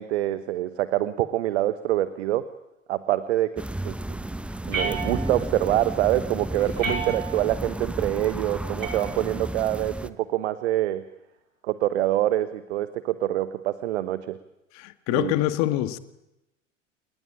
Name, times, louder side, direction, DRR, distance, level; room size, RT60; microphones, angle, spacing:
voice 1, 0.0-2.5 2.9-4.0 4.7-11.0 11.6-14.4 15.1-15.3, right 14 dB, 55° right, 13 dB, 1.4 m, -25 dB
sound 1, 3.6-10.1, right 1 dB, 5° right, 1.1 m, -33 dB
sound 2, 4.7-5.6 6.8-7.6 8.8-9.6, right 4 dB, 90° right, 5.4 m, -32 dB
voice 2, 14.7-16.0, left 14 dB, 45° left, 11 dB, 2.0 m, -25 dB
28.5 x 20.0 x 8.8 m, 0.91 s
figure-of-eight pair, 85°, 39 cm